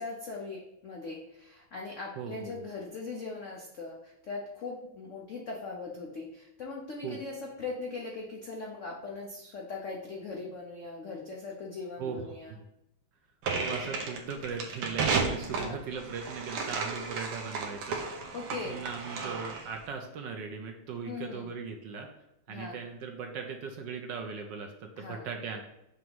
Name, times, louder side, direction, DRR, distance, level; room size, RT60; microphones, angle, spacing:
voice 1, 0.0-12.6 15.4-15.8 18.3-18.9 21.1-21.5 22.5-22.8 25.0-25.3, left 3 dB, 80° left, -1 dB, 0.6 m, -40 dB
voice 2, 2.2-2.6 7.0-7.2 12.0-12.6 13.5-18.3 18.6-22.1 22.5-25.6, right 5 dB, 70° right, 3 dB, 1.1 m, -39 dB
sound 1, 13.4-19.8, right 4 dB, 90° right, 1.9 m, -33 dB
6.1 x 3.0 x 5.2 m, 0.84 s
omnidirectional pair, 2.4 m